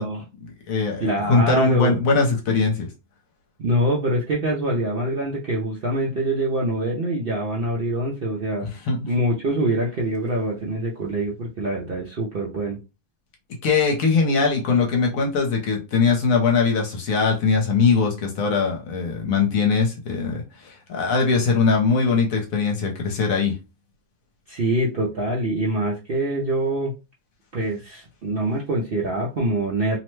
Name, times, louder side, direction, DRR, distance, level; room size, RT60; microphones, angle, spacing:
voice 1, 0.4-2.9 8.6-9.1 13.6-23.5, left 4 dB, 65° left, 1.1 m, -21 dB
voice 2, 1.0-1.9 3.6-8.7 9.1-12.8 24.5-26.9 27.5-30.0, right 1 dB, 60° right, 0.6 m, -24 dB
2.8 x 2.1 x 3.1 m
omnidirectional pair, 1.6 m